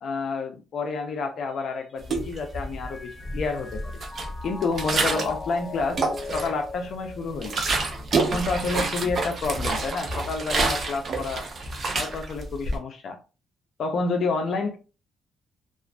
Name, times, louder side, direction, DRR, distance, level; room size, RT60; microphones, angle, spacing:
voice 1, 0.0-4.0 4.4-6.0 6.3-7.6 8.2-11.5 11.9-13.2 13.8-14.8, left 4 dB, 60° left, 4 dB, 0.4 m, -29 dB
Mallet percussion, 1.5-8.0, left 3 dB, 25° left, 0.7 m, -40 dB
sound 1, 2.0-2.9 3.2-5.4 5.8-6.7 7.1-12.8, right 3 dB, 50° right, 0.6 m, -28 dB
2.4 x 2.4 x 2.2 m, 0.32 s
cardioid pair, 90°, 0 cm